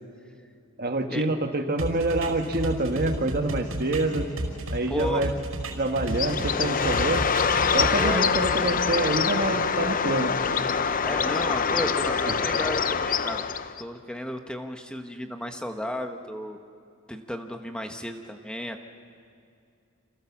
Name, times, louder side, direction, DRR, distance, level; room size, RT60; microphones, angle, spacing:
voice 1, 0.8-4.3 4.7-5.3 5.7-7.2 7.7-10.3 12.3-12.4, right 2 dB, 45° right, 5 dB, 1.6 m, -26 dB
sound 1, 1.8-6.5 6.8-8.5, right 1 dB, 75° right, 5.2 m, -32 dB
voice 2, 4.9-5.3 8.0-8.4 11.0-13.4 13.8-16.6 17.1-18.8, equal, 5° left, 5 dB, 1.2 m, -33 dB
Bird, 6.1-13.8, left 6 dB, 40° left, 0.7 m, -25 dB
29.0 x 27.5 x 7.3 m, 2.4 s
head